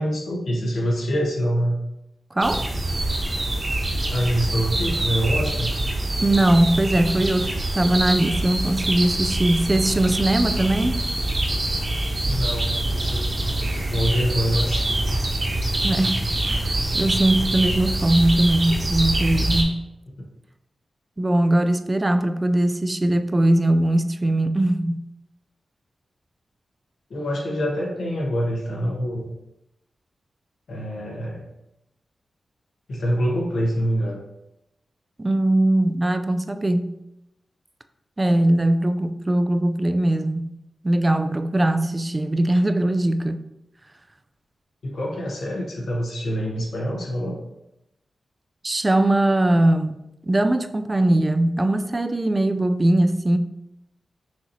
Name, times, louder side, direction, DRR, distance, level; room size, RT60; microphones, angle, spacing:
voice 1, 0.0-1.8 4.1-5.7 12.3-13.3 13.7-15.0 27.1-29.3 30.7-31.5 32.9-34.2 44.8-47.4, equal, 80° left, 1.2 m, -25 dB
voice 2, 2.3-2.7 6.2-11.0 15.8-19.8 21.2-25.0 35.2-36.9 38.2-40.5 40.8-43.4 48.6-50.0 50.2-53.4, right 1 dB, 25° right, 0.3 m, -20 dB
sound 1, 2.4-19.6, right 1 dB, 40° right, 1.1 m, -25 dB
6.0 x 3.0 x 2.7 m
cardioid pair, 80°, 0 cm